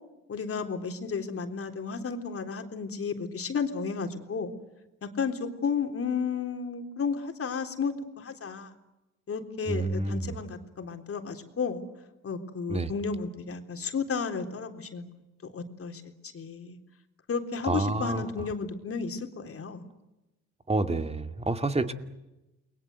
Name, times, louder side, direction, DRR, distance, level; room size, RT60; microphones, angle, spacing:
voice 1, 0.3-4.5 5.0-8.7 9.3-11.8 12.2-15.1 15.5-16.8 17.3-19.8, left 5 dB, 50° left, 6 dB, 3.8 m, -33 dB
voice 2, 9.7-10.4 12.7-12.9 17.6-18.3 20.7-21.9, right 2 dB, 20° right, 8 dB, 2.3 m, -28 dB
29.5 x 22.5 x 8.0 m, 1.0 s
cardioid pair, 90°, 30 cm